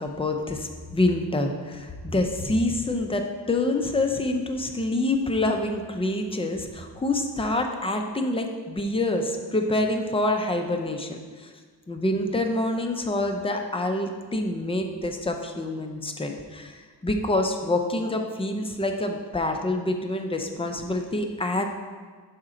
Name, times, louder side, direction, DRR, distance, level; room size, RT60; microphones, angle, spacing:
voice 1, 0.0-11.5 11.9-21.7, left 2 dB, 15° left, 4 dB, 0.5 m, -26 dB
5.9 x 4.3 x 3.8 m, 1.5 s
wide cardioid pair, 100°, 42 cm